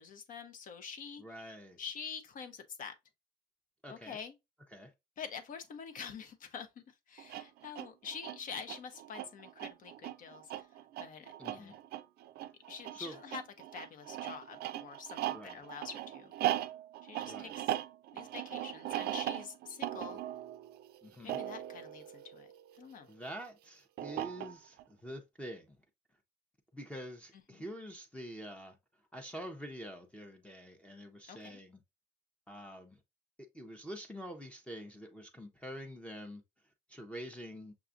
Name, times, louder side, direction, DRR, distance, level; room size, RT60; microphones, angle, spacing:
voice 1, 0.0-1.2 1.8-2.9 3.9-4.3 5.2-10.7 11.0-11.8 12.7-13.4 13.7-16.3 17.0-17.7 18.1-20.2 21.2-22.5 22.7-23.1 27.5-27.6 31.3-31.6, left 6 dB, 55° left, 0.7 m, -46 dB
voice 2, 1.2-1.8 3.8-4.2 4.7-4.9 11.4-11.8 12.9-13.1 15.3-15.7 17.3-17.6 21.0-21.4 23.1-25.8 26.7-28.8 29.1-31.8 32.5-33.0 33.4-36.4 36.9-37.7, equal, 5° left, 0.6 m, -46 dB
sound 1, 7.2-23.0 24.0-24.8, right 13 dB, 70° right, 0.4 m, -39 dB
6.0 x 2.3 x 2.5 m
cardioid pair, 110°, 17 cm